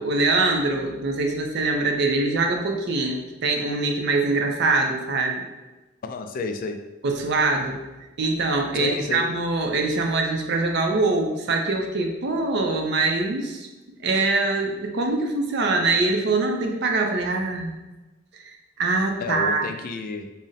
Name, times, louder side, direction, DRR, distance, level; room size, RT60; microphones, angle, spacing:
voice 1, 0.0-5.4 7.0-7.8 8.2-13.7 14.0-17.8 18.4-19.6, right 3 dB, 60° right, 3 dB, 0.5 m, -23 dB
voice 2, 6.0-6.9 8.7-9.3 19.2-20.3, left 3 dB, 45° left, 6 dB, 0.3 m, -31 dB
3.8 x 2.1 x 3.9 m, 1.1 s
head